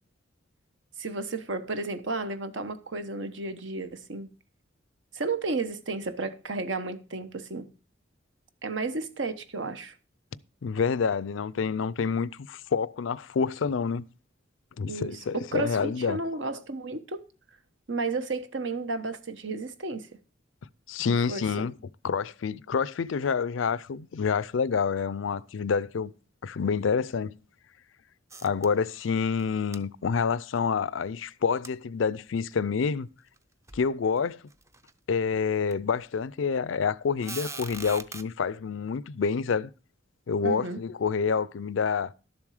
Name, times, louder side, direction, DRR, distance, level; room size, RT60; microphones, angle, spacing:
voice 1, 1.0-4.3 5.1-7.7 8.6-9.9 14.9-17.2 17.9-20.1 21.1-21.4 40.4-40.8, right 3 dB, 70° right, 1.1 m, -33 dB
voice 2, 10.6-14.0 14.8-16.2 20.9-21.8 22.0-26.1 26.4-27.3 28.4-33.1 33.7-34.4 35.1-39.7 40.3-42.1, left 5 dB, 80° left, 0.5 m, -28 dB
sound 1, 28.3-29.1 29.4-29.5 29.7-29.8 31.6-31.7 32.5-32.6 33.4-33.5 33.7-33.9 34.5-34.9 35.7-35.8 37.2-38.2, right 3 dB, 15° right, 0.5 m, -41 dB
12.0 x 7.2 x 4.9 m
head